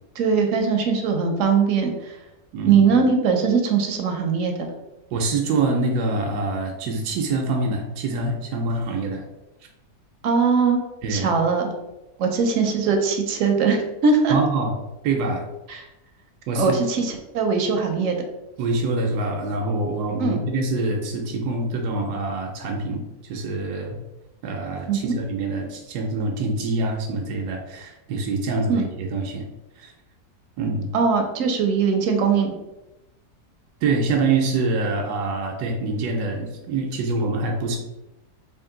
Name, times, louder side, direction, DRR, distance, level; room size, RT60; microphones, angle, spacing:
voice 1, 0.2-2.2 2.7-4.7 10.2-10.8 11.1-11.7 12.2-14.4 15.7-15.9 16.6-18.1 20.2-20.4 24.9-25.1 28.7-28.8 30.9-32.6, right 5 dB, 70° right, 4 dB, 0.8 m, -21 dB
voice 2, 2.5-2.9 5.1-9.2 11.0-11.3 14.3-14.7 15.0-15.5 16.5-16.8 18.6-24.0 24.4-29.4 29.8-29.9 30.6-30.9 33.8-37.8, right 3 dB, 90° right, 2 dB, 1.1 m, -25 dB
3.5 x 2.5 x 3.7 m, 0.98 s
omnidirectional pair, 1.7 m